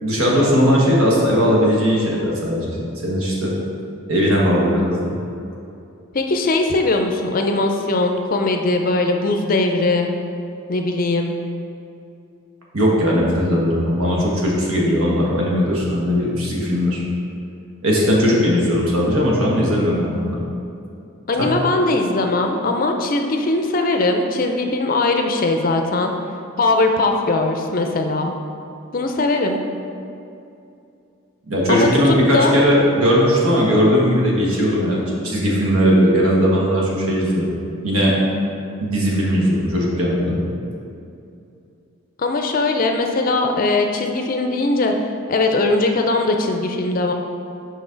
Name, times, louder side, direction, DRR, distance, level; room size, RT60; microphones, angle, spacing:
voice 1, 0.0-3.5 4.1-5.1 12.7-17.0 17.8-20.4 21.4-21.5 31.5-37.5 37.8-38.2 38.8-40.4, equal, 80° right, -4 dB, 1.4 m, -18 dB
voice 2, 6.1-10.1 10.7-11.4 21.3-26.1 26.6-28.3 28.9-29.6 31.7-32.5 42.2-45.0 45.3-47.1, left 2 dB, 40° left, 4 dB, 0.4 m, -20 dB
6.2 x 5.2 x 3.8 m, 2.6 s
head